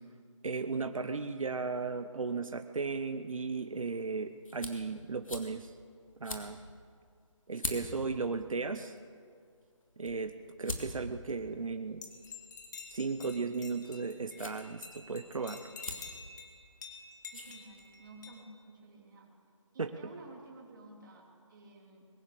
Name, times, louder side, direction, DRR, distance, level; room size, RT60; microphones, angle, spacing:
voice 1, 0.4-5.7 6.2-6.6 7.5-9.0 10.0-10.3 10.6-12.1 12.9-15.7 19.8-19.9, right 4 dB, 85° right, 9 dB, 0.9 m, -35 dB
sound 1, 3.5-18.3, left 2 dB, 85° left, 2.6 m, -47 dB
sound 2, 12.0-18.4, left 5 dB, 35° left, 1.9 m, -49 dB
voice 2, 17.3-19.3 19.7-22.0, right 2 dB, 40° right, 0 dB, 3.2 m, -52 dB
21.5 x 9.8 x 6.6 m, 2.2 s
figure-of-eight pair, 160°, 17 cm